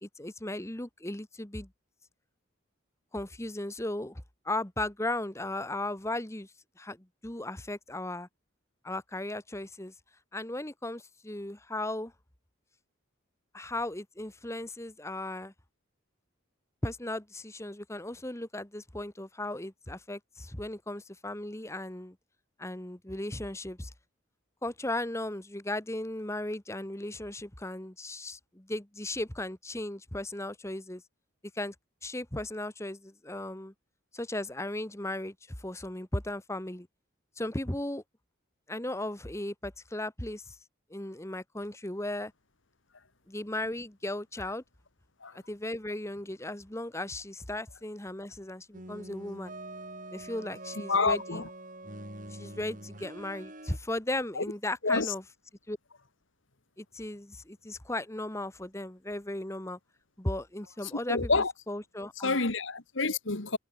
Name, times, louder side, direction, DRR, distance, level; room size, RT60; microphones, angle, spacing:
voice 1, 0.0-1.7 3.1-6.5 6.8-8.3 8.8-9.9 10.3-12.1 13.5-15.5 16.8-22.2 22.6-23.9 24.6-31.0 31.5-31.7 32.0-33.7 34.1-36.9 37.4-38.0 38.7-40.6 40.9-42.3 43.3-44.6 45.3-49.5 50.1-51.4 52.3-55.3 55.7-55.8 56.8-59.8 60.2-62.4, left 1 dB, 15° left, 1.4 m, -36 dB
sound 1, 48.7-53.8, right 2 dB, 40° right, 4.7 m, -44 dB
voice 2, 50.9-51.5 54.4-54.5 54.8-55.1 61.1-61.5 62.2-63.6, left 3 dB, 70° left, 1.9 m, -28 dB
head